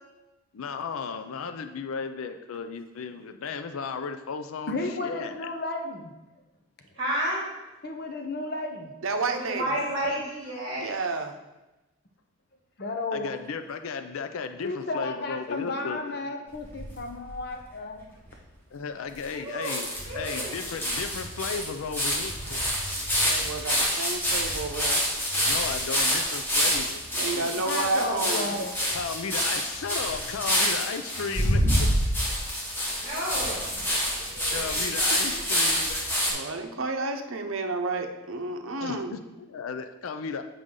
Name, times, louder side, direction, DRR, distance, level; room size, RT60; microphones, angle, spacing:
voice 1, 0.5-5.5 13.1-16.2 18.7-19.9 20.1-22.6 23.0-23.1 25.4-27.6 28.9-31.9 34.5-36.3 38.8-40.4, left 5 dB, 80° left, 9 dB, 0.4 m, -35 dB
voice 2, 4.7-6.1 7.8-8.9 12.8-13.3 14.6-18.1 27.6-28.8, left 2 dB, 45° left, 4 dB, 0.7 m, -33 dB
voice 3, 6.9-7.4 9.3-10.9 19.4-19.7 20.0-20.6 33.0-34.1, right 1 dB, 20° right, -7 dB, 2.6 m, -31 dB
voice 4, 9.0-9.8 10.8-11.3 23.2-25.1 27.2-28.7 34.2-35.7 36.3-39.2, right 3 dB, 70° right, 5 dB, 0.7 m, -31 dB
sound 1, 16.5-17.5 18.0-18.1 18.3-18.4 19.2-19.3 19.6-36.3, equal, 10° left, 1.2 m, -27 dB
7.8 x 5.1 x 3.8 m, 1.0 s
head